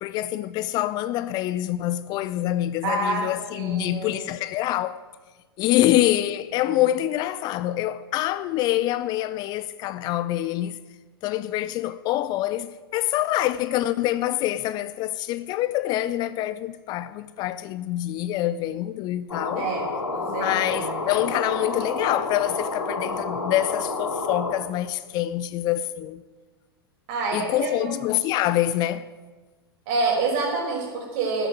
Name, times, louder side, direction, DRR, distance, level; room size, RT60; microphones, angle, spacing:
voice 1, 0.0-5.0 5.6-10.8 11.2-19.7 20.3-26.2 27.3-29.1, left 14 dB, 30° left, 0.5 m, -26 dB
voice 2, 2.8-3.3 3.6-4.2 5.7-5.8 19.6-20.9 27.1-27.9 29.9-31.5, right 3 dB, 45° right, 5.1 m, -27 dB
sound 1, 19.3-24.6, left 3 dB, 75° left, 3.1 m, -29 dB
13.5 x 7.9 x 9.1 m
figure-of-eight pair, 100°, 13 cm